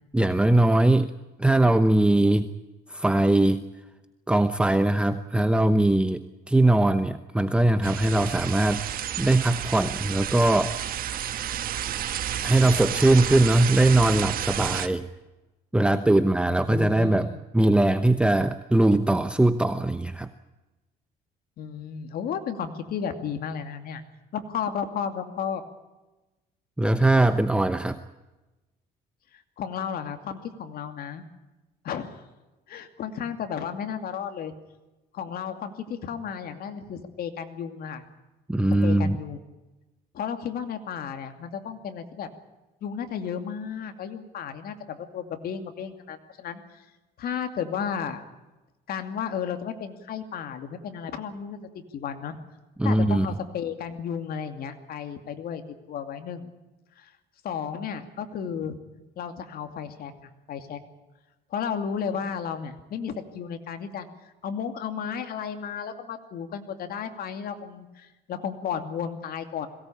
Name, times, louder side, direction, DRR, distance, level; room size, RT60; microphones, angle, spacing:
voice 1, 0.1-1.1 1.4-2.5 2.9-3.6 4.3-8.8 9.2-10.7 12.4-15.1 15.7-20.3 26.8-28.0 38.5-39.2 52.8-53.3, right 1 dB, 5° right, 10 dB, 0.9 m, -21 dB
sound 1, 7.8-14.9, right 10 dB, 60° right, 1.5 m, -31 dB
voice 2, 16.6-17.4 21.6-24.0 24.3-25.6 29.3-31.2 31.8-32.2 32.7-34.5 35.1-38.0 38.7-39.4 40.1-42.3 42.8-46.8 47.2-48.2 48.9-52.4 52.8-55.6 55.9-56.5 57.0-57.1 57.4-58.8 59.2-60.8 61.5-64.1 64.4-69.7, left 7 dB, 65° left, 7 dB, 2.6 m, -33 dB
22.0 x 17.5 x 8.7 m, 1.1 s
cardioid pair, 110°, 17 cm